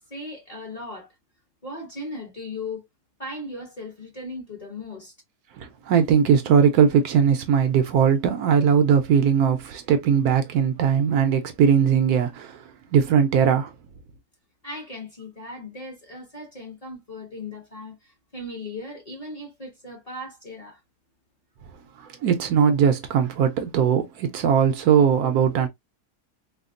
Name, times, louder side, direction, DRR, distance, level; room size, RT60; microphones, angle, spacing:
voice 1, 0.1-1.1 1.6-2.8 3.2-5.1 14.6-20.8, left 2 dB, 25° left, 1.1 m, -37 dB
voice 2, 5.6-12.6 12.9-13.7 22.0-25.7, right 7 dB, 75° right, 1.0 m, -20 dB
3.5 x 2.2 x 2.4 m
omnidirectional pair, 1.7 m